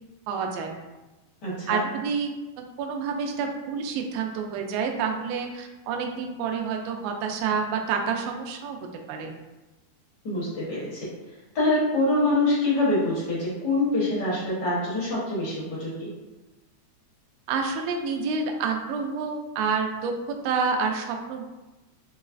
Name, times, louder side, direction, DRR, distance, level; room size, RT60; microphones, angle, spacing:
voice 1, 0.3-0.7 1.7-2.3 2.8-8.8 9.1-9.3 17.5-21.5, right 5 dB, 80° right, 3 dB, 1.5 m, -28 dB
voice 2, 1.4-1.8 10.2-11.1 11.5-16.1, left 2 dB, 60° left, -7 dB, 1.1 m, -25 dB
4.6 x 3.0 x 2.5 m, 1.1 s
omnidirectional pair, 3.4 m